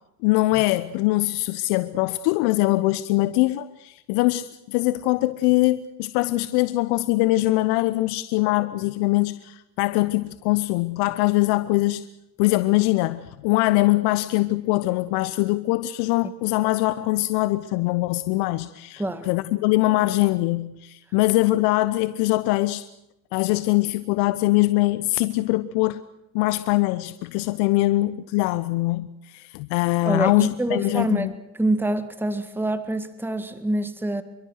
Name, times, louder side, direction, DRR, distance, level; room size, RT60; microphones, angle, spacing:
voice 1, 0.2-12.1 12.4-22.9 23.3-26.0 26.3-31.3, left 19 dB, 55° left, 1.0 m, -22 dB
voice 2, 19.0-19.3 30.1-34.2, right 1 dB, 5° right, 1.9 m, -26 dB
28.0 x 23.5 x 6.4 m
hypercardioid pair, 75°, 47 cm